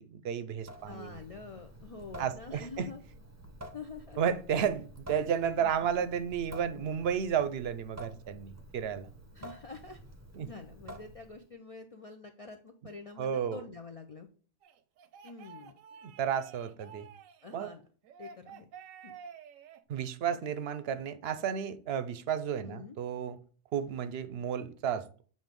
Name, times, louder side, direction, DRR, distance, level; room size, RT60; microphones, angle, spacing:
voice 1, 0.0-1.2 2.2-2.9 4.2-9.1 10.3-10.5 13.2-13.6 16.0-17.1 17.5-17.7 19.9-23.4 23.7-25.2, right 8 dB, 60° right, 0.7 m, -32 dB
Water tap faucet / Sink (filling or washing) / Drip, 0.6-11.5, equal, 20° right, 0.5 m, -50 dB
voice 2, 0.8-3.0 3.7-4.2 5.6-5.7 9.3-10.0 10.4-14.3 15.2-15.7 17.4-17.9 18.2-18.7 19.0-19.1 22.6-23.0, left 4 dB, 65° left, 0.3 m, -46 dB
sound 1, 14.6-17.5 18.0-19.8, right 7 dB, 90° right, 1.0 m, -51 dB
7.8 x 2.6 x 5.1 m
omnidirectional pair, 1.3 m